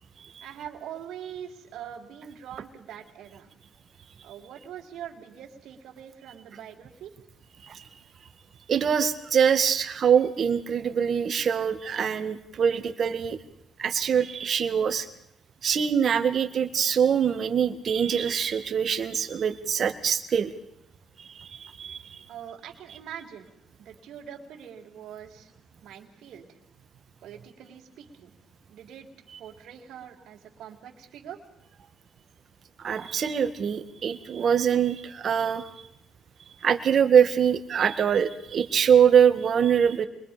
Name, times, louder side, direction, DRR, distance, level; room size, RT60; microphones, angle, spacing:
voice 1, 0.4-3.5 4.2-7.1 22.3-23.5 23.8-25.5 25.8-26.6 27.2-28.3 28.7-29.1 29.4-31.4, right 9 dB, 80° right, 1 dB, 3.7 m, -43 dB
voice 2, 8.7-13.4 13.8-15.1 15.6-20.5 21.2-22.2 32.8-35.9 36.6-40.1, right 7 dB, 55° right, 7 dB, 1.9 m, -24 dB
29.0 x 22.5 x 5.2 m, 0.80 s
cardioid pair, 90°, 0 cm